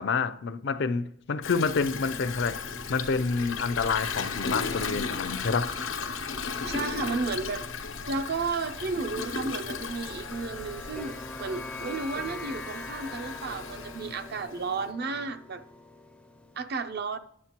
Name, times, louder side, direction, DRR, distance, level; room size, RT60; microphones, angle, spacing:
voice 1, 0.0-5.7, left 4 dB, 60° left, 0.4 m, -28 dB
Toilet flush, 1.4-14.8, left 5 dB, 90° left, 1.0 m, -36 dB
sound 1, 2.6-11.1, equal, 85° right, 0.9 m, -47 dB
voice 2, 6.6-15.6 16.6-17.2, right 4 dB, 55° right, 0.6 m, -33 dB
sound 2, 9.7-16.6, left 2 dB, 5° left, 0.4 m, -43 dB
9.5 x 7.8 x 2.9 m
head